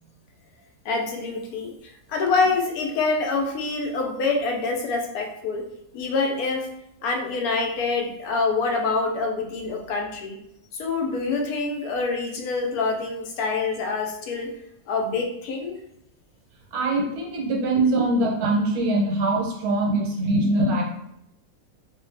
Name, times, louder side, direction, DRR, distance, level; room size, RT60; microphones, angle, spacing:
voice 1, 0.8-1.7 2.1-5.7 5.9-6.7 7.0-10.4 10.7-14.5 14.9-15.8, left 4 dB, 85° left, 2 dB, 1.1 m, -26 dB
voice 2, 16.7-20.8, right 2 dB, 85° right, 0 dB, 1.2 m, -22 dB
2.6 x 2.4 x 3.2 m, 0.79 s
omnidirectional pair, 1.5 m